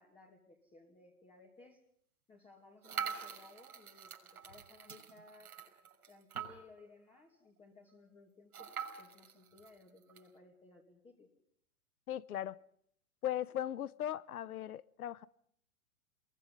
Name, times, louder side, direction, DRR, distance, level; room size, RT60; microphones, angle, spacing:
voice 1, 0.0-1.8 2.3-4.2 4.4-5.6 6.1-8.7 8.9-11.3, left 3 dB, 10° left, 0 dB, 2.5 m, -60 dB
sound 1, 2.8-6.9 7.3-7.4 7.6-7.7 8.5-10.3, right 7 dB, 85° right, 6.3 m, -44 dB
voice 2, 12.1-12.6 13.2-15.3, left 11 dB, 80° left, 21 dB, 1.1 m, -38 dB
28.5 x 22.5 x 5.4 m, 0.68 s
hypercardioid pair, 145°, 43 cm